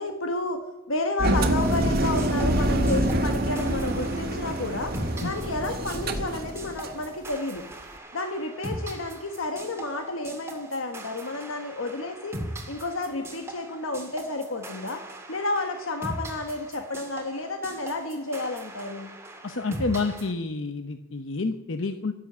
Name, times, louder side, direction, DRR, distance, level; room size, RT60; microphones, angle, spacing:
voice 1, 0.0-5.0 5.2-7.6 8.1-12.4 12.7-15.0 15.3-19.1, left 2 dB, 85° left, 5 dB, 1.4 m, -31 dB
Engine, 1.2-7.0, right 1 dB, 50° right, 1.7 m, -26 dB
sound 1, 1.6-20.3, right 1 dB, 15° right, 2.1 m, -40 dB
voice 2, 19.4-22.1, left 3 dB, 65° left, 8 dB, 0.8 m, -29 dB
12.5 x 11.0 x 8.2 m, 0.91 s
head